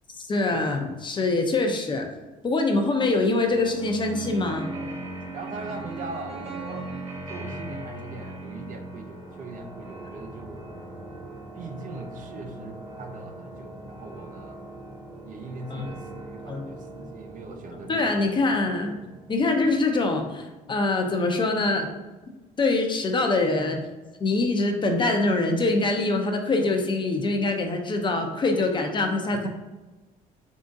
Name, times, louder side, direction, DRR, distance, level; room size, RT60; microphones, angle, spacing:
voice 1, 0.1-2.1 2.4-4.7 15.7-15.9 16.5-16.7 17.9-19.0 19.3-21.9 22.6-23.8 24.2-29.5, left 2 dB, 30° left, 3 dB, 0.6 m, -24 dB
sound 1, 3.5-20.0, right 2 dB, 35° right, 1.3 m, -40 dB
voice 2, 5.3-6.9 7.3-10.7 11.5-14.6 15.2-18.3, right 3 dB, 50° right, 5 dB, 0.5 m, -40 dB
3.7 x 3.6 x 2.6 m, 1.2 s
cardioid pair, 110°, 17 cm